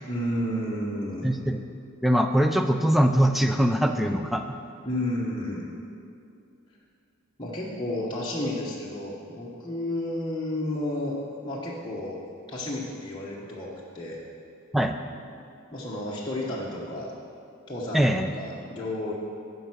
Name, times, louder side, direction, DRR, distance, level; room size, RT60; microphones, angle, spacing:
voice 1, 0.1-1.3 4.8-5.6 7.4-11.2 11.4-12.2 12.5-14.2 15.7-17.1 17.7-19.1, left 1 dB, 20° left, -6 dB, 0.9 m, -31 dB
voice 2, 1.2-1.6 2.0-4.4 14.7-15.0 17.9-18.3, equal, ahead, 6 dB, 0.3 m, -22 dB
9.9 x 5.4 x 6.0 m, 2.5 s
head